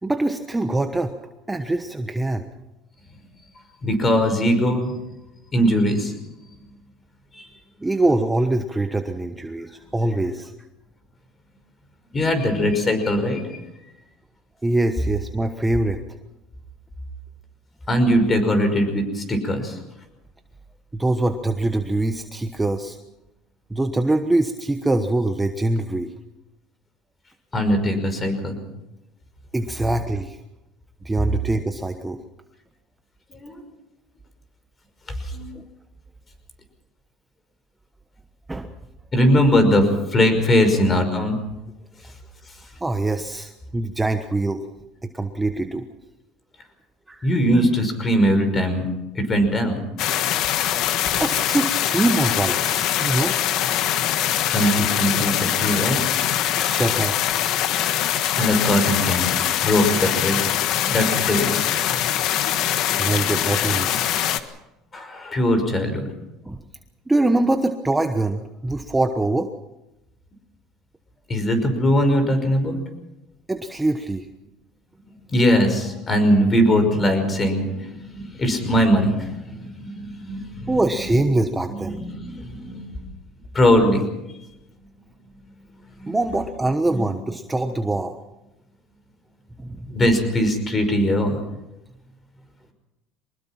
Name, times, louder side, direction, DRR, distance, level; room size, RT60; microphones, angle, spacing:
voice 1, 0.0-1.1 1.5-2.5 7.8-10.5 14.6-16.0 20.9-23.0 23.7-26.1 29.5-30.4 31.0-32.2 35.5-35.6 38.5-38.7 42.8-44.6 45.0-45.8 47.1-47.3 51.2-53.3 56.5-57.4 63.0-64.2 66.4-66.6 67.1-69.5 73.5-74.3 80.7-82.0 86.1-88.2 89.6-89.9, right 2 dB, 10° right, 7 dB, 1.2 m, -23 dB
voice 2, 3.8-4.9 5.5-6.1 7.3-7.5 12.1-13.6 17.9-19.8 27.5-28.6 33.3-33.6 35.2-35.5 39.1-41.4 47.2-48.9 49.1-49.8 54.5-56.1 58.3-60.4 60.8-61.6 64.9-66.0 71.3-72.8 75.3-80.7 81.9-82.9 83.5-84.0 86.0-86.2 86.9-87.0 89.9-91.4, equal, 25° left, 8 dB, 5.5 m, -20 dB
sound 1, 50.0-64.4, left 11 dB, 60° left, 1.4 m, -23 dB
24.0 x 20.0 x 6.0 m, 0.97 s
supercardioid pair, 120°, 0 cm